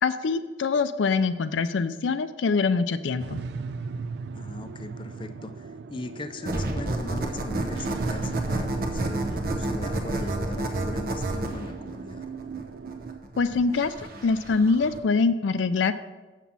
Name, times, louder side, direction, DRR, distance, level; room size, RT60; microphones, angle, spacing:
voice 1, 0.0-3.4 13.4-13.9 14.2-15.9, left 4 dB, 85° left, 12 dB, 0.4 m, -24 dB
sound 1, 3.2-13.2, right 5 dB, 65° right, 0.3 m, -38 dB
voice 2, 4.3-12.3, left 2 dB, 25° left, 8 dB, 0.4 m, -39 dB
sound 2, 6.5-15.0, right 2 dB, 50° right, 0.8 m, -30 dB
7.3 x 6.0 x 5.5 m, 1.2 s
head